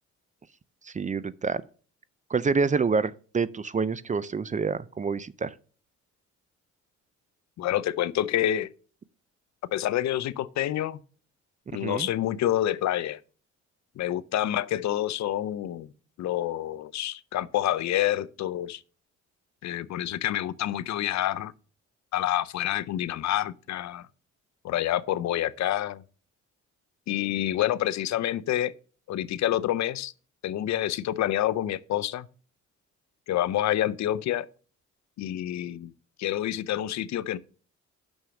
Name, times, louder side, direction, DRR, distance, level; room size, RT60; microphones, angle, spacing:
voice 1, 0.9-1.6 2.3-5.5 11.8-12.1, right 5 dB, 25° right, 0.5 m, -27 dB
voice 2, 7.6-8.7 9.7-11.0 11.7-13.2 14.0-15.9 16.2-18.8 19.6-21.5 22.1-24.1 24.6-26.0 27.1-28.7 29.1-30.1 30.4-32.3 33.3-34.5 35.2-35.9 36.2-37.4, left 12 dB, 65° left, 0.6 m, -28 dB
6.4 x 6.2 x 6.9 m
cardioid pair, 90°, 30 cm